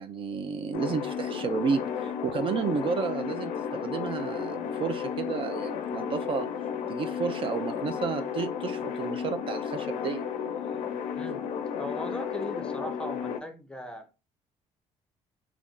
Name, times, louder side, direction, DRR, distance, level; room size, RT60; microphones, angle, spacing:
voice 1, 0.0-6.5 6.9-10.2, right 6 dB, 45° right, 0.4 m, -32 dB
sound 1, 0.7-13.4, left 7 dB, 85° left, 0.4 m, -33 dB
voice 2, 11.8-14.1, left 1 dB, 5° left, 0.5 m, -38 dB
2.5 x 2.3 x 3.5 m
cardioid pair, 105°, 12 cm